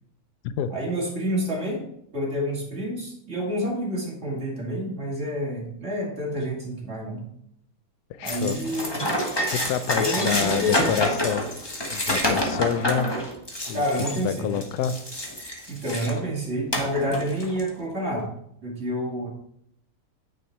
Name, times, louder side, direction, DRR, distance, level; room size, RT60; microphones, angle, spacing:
voice 1, 0.7-1.9 2.1-7.2 8.2-9.1 9.9-10.9 13.7-14.5 15.7-18.3 18.6-19.3, equal, 35° right, -2 dB, 2.7 m, -28 dB
voice 2, 8.2-8.6 9.5-11.4 11.9-13.1 13.7-13.8 14.2-15.0, left 9 dB, 75° left, 12 dB, 0.9 m, -27 dB
sound 1, 8.3-16.2 16.7-17.7, left 1 dB, 15° left, 1.0 m, -28 dB
9.4 x 6.5 x 4.6 m, 0.74 s
omnidirectional pair, 2.3 m